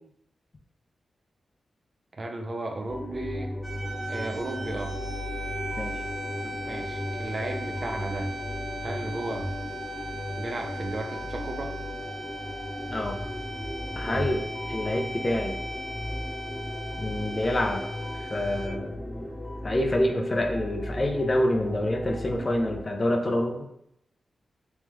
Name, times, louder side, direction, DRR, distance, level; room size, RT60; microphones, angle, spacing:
voice 1, 2.2-3.6 4.1-4.9 6.4-8.3 8.8-9.5 10.4-11.7 14.0-14.2, right 2 dB, 45° right, 4 dB, 0.5 m, -34 dB
sound 1, 2.9-22.8, left 1 dB, 20° left, 0.9 m, -36 dB
sound 2, 3.6-18.7, equal, 5° right, 1.0 m, -38 dB
voice 2, 14.0-14.4 14.7-15.6 17.0-17.8 18.3-19.3 19.6-23.6, left 1 dB, 40° left, 3 dB, 0.6 m, -27 dB
3.2 x 2.9 x 3.4 m, 0.77 s
cardioid pair, 65°, 0 cm